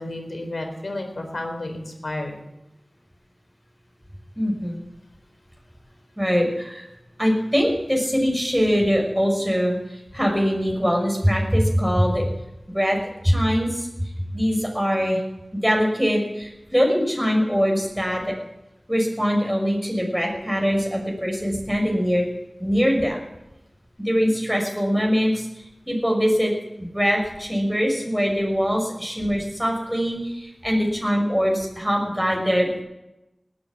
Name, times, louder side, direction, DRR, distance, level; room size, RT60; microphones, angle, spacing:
voice 1, 0.0-2.3, left 1 dB, 80° left, 4 dB, 3.9 m, -31 dB
voice 2, 4.4-4.8 6.2-6.9 7.2-12.3 12.7-13.0 13.2-15.2 15.5-18.3 18.9-22.3 22.6-23.2 24.0-32.8, equal, ahead, 0 dB, 5.8 m, -22 dB
19.0 x 10.0 x 7.3 m, 0.91 s
wide cardioid pair, 55°, 0 cm